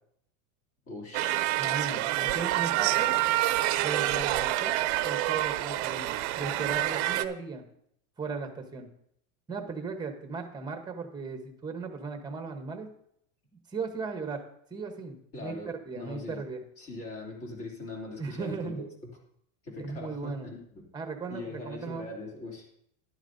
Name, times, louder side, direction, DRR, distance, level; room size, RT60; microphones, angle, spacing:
voice 1, 0.9-1.6 15.3-16.4 16.8-18.8 19.6-20.8 21.3-22.7, left 2 dB, 35° left, -1 dB, 2.9 m, -41 dB
sound 1, 1.1-7.3, right 15 dB, 55° right, 0.7 m, -27 dB
voice 2, 1.5-3.1 3.8-4.7 5.0-7.6 8.2-8.9 9.5-12.9 13.7-14.4 14.7-16.6 18.2-18.8 19.8-20.5 20.9-22.1, right 4 dB, 10° right, 5 dB, 1.0 m, -37 dB
12.0 x 11.0 x 2.7 m, 0.70 s
supercardioid pair, 155°, 39 cm